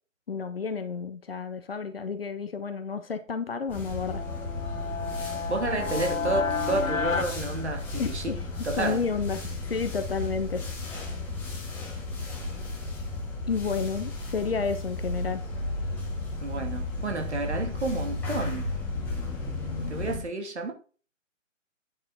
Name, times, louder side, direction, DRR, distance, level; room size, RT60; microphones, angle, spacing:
voice 1, 0.3-4.2 8.0-8.4 8.7-10.6 13.5-15.4, left 5 dB, 45° left, 1.2 m, -31 dB
sound 1, 3.7-20.2, left 2 dB, 5° left, 1.6 m, -34 dB
sound 2, 4.1-8.4, left 5 dB, 80° left, 0.9 m, -32 dB
voice 2, 5.5-8.3 8.6-9.0 12.2-12.3 16.4-18.7 19.9-20.7, right 2 dB, 60° right, 2.9 m, -30 dB
9.7 x 6.1 x 4.2 m
figure-of-eight pair, 140°, 39 cm